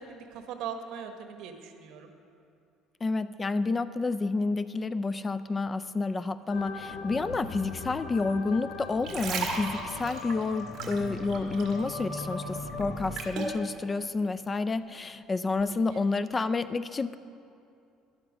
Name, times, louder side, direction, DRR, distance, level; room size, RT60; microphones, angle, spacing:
voice 1, 0.0-2.1 13.2-13.5 15.6-16.0, right 7 dB, 65° right, 6 dB, 1.2 m, -41 dB
voice 2, 3.0-17.2, left 3 dB, 20° left, 14 dB, 0.3 m, -29 dB
sound 1, 6.5-13.2, left 3 dB, 50° left, 1.8 m, -39 dB
sound 2, 8.8-11.9 12.2-13.6 14.2-14.3, right 4 dB, 45° right, 1.8 m, -35 dB
12.5 x 11.5 x 5.0 m, 2.5 s
cardioid pair, 130°, 0 cm